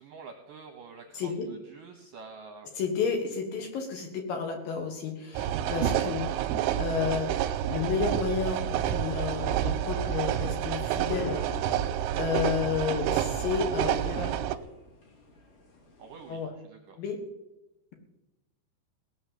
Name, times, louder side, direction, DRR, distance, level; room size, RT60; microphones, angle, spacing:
voice 1, 0.0-2.7 16.0-17.0, right 5 dB, 70° right, 4 dB, 2.0 m, -47 dB
voice 2, 1.1-1.5 2.8-6.3 6.8-11.4 12.2-14.3 16.3-16.5 17.0-17.2, left 6 dB, 60° left, 3 dB, 2.8 m, -31 dB
sound 1, 5.3-14.6, right 11 dB, 90° right, 3.1 m, -29 dB
sound 2, 10.7-16.4, left 1 dB, 45° left, 4.1 m, -47 dB
19.0 x 6.5 x 8.5 m, 0.97 s
omnidirectional pair, 5.4 m